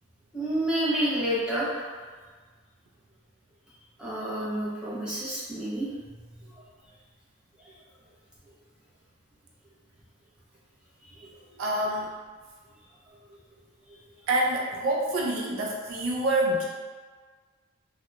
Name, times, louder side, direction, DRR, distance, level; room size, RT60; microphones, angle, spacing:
voice 1, 0.3-1.9 4.0-5.9 6.4-6.6 7.6-7.7 11.2-11.3 13.9-14.0, right 1 dB, 5° right, -9 dB, 0.6 m, -29 dB
voice 2, 11.6-12.1 14.3-16.6, right 1 dB, 65° right, -2 dB, 0.3 m, -26 dB
2.8 x 2.0 x 2.2 m, 1.5 s
head